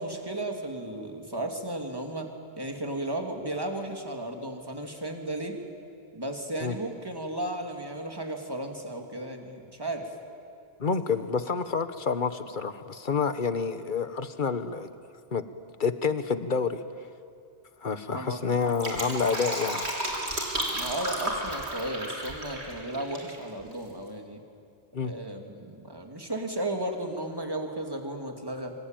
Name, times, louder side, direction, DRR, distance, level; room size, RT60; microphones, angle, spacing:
voice 1, 0.0-5.6 6.1-10.1 11.1-11.2 18.1-18.4 20.7-24.4 25.0-28.7, right 1 dB, 20° right, 3 dB, 2.7 m, -34 dB
voice 2, 10.8-14.9 15.3-15.4 15.8-16.8 17.8-19.8 24.9-25.1, left 5 dB, 50° left, 11 dB, 1.3 m, -28 dB
Fill (with liquid), 18.5-23.3 23.6-23.7, right 1 dB, 90° right, 4.3 m, -32 dB
25.5 x 25.0 x 9.1 m, 2.4 s
omnidirectional pair, 1.1 m